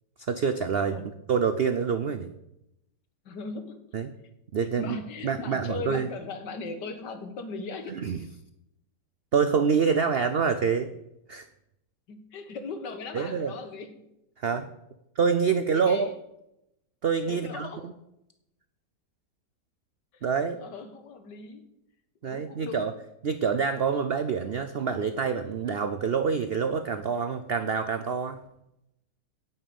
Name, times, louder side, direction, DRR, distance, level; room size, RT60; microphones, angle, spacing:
voice 1, 0.3-1.0 1.3-2.3 3.9-4.1 4.5-5.0 5.2-6.1 7.9-8.2 9.3-10.9 11.3-11.5 13.1-13.5 14.4-14.7 15.2-16.1 17.0-17.9 20.2-20.6 22.2-22.9 23.2-28.4, right 6 dB, 80° right, 10 dB, 0.5 m, -26 dB
voice 2, 3.3-3.8 4.8-8.0 12.1-14.0 15.5-16.1 17.3-17.9 20.1-21.6 22.2-22.9, left 4 dB, 80° left, 8 dB, 1.8 m, -39 dB
9.0 x 6.8 x 8.7 m, 0.85 s
omnidirectional pair, 1.9 m